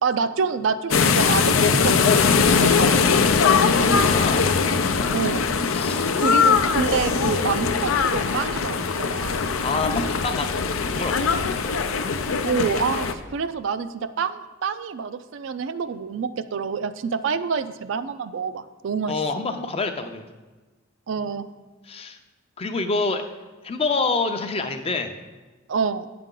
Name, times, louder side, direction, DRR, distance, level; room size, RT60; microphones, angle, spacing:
voice 1, 0.0-3.1 5.1-5.5 6.1-9.5 12.5-19.2 21.1-21.5 25.7-26.1, right 5 dB, 65° right, 12 dB, 0.4 m, -27 dB
sound 1, 0.9-13.1, left 5 dB, 85° left, 0.5 m, -21 dB
voice 2, 3.7-4.5 5.7-6.1 9.6-10.5 10.9-11.4 19.1-20.2 21.9-22.2 22.6-23.2 23.6-25.2, left 3 dB, 30° left, 7 dB, 0.5 m, -27 dB
8.9 x 6.8 x 3.8 m, 1.2 s
head